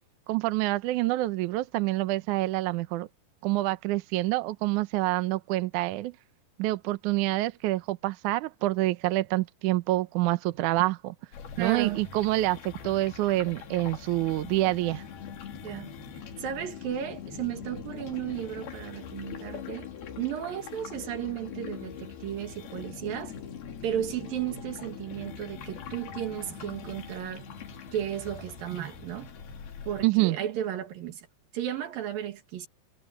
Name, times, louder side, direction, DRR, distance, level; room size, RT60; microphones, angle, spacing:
voice 1, 0.3-3.1 3.4-6.1 6.6-11.1 11.6-15.0 30.0-30.4, right 17 dB, 80° right, 1.7 m, -27 dB
sound 1, 11.3-30.1, left 7 dB, 70° left, 4.5 m, -42 dB
voice 2, 11.6-12.1 15.6-15.9 16.4-19.9 20.2-23.4 23.8-27.5 27.9-29.3 29.9-31.3 31.5-32.7, right 10 dB, 65° right, 3.6 m, -34 dB
omnidirectional pair, 4.6 m